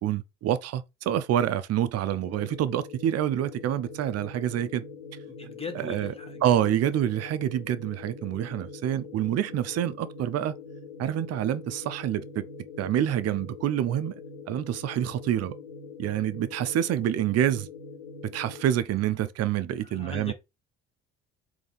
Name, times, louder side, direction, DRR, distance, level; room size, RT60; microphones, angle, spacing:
voice 1, 0.0-4.8 5.8-6.1 6.4-10.5 11.0-12.4 12.8-14.1 14.5-15.5 16.0-17.7 18.2-20.3, right 11 dB, 55° right, 0.6 m, -27 dB
sound 1, 2.2-18.6, left 4 dB, 85° left, 1.0 m, -43 dB
voice 2, 5.3-6.9 19.8-20.3, left 4 dB, 20° left, 1.0 m, -40 dB
3.4 x 2.8 x 4.0 m
hypercardioid pair, 60°, 31 cm